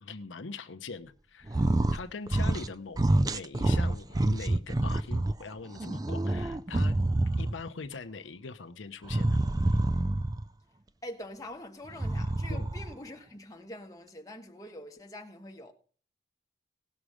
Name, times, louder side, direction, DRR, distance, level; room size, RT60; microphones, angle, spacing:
voice 1, 0.0-7.0 7.4-9.4 9.7-9.8 12.5-12.7, left 4 dB, 85° left, 0.8 m, -42 dB
sound 1, 1.5-2.0 2.3-2.7 3.0-5.3 5.8-7.7 9.0-10.5 11.9-12.9, right 1 dB, 20° right, 0.4 m, -27 dB
voice 2, 11.0-15.7, left 1 dB, 20° left, 1.4 m, -44 dB
18.0 x 6.3 x 5.0 m
head